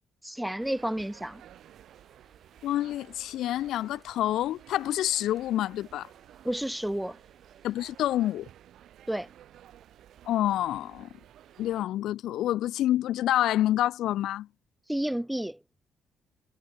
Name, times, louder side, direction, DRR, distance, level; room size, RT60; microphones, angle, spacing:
voice 1, 0.2-1.4 6.4-7.2 9.1-9.3 14.9-15.6, right 1 dB, 5° right, 0.4 m, -31 dB
sound 1, 0.6-11.9, right 11 dB, 75° right, 3.9 m, -54 dB
sound 2, 0.9-8.4, right 3 dB, 25° right, 5.5 m, -65 dB
voice 2, 2.6-6.1 7.6-8.5 10.3-11.1 11.6-14.5, left 13 dB, 80° left, 0.3 m, -27 dB
cardioid pair, 90°, 0 cm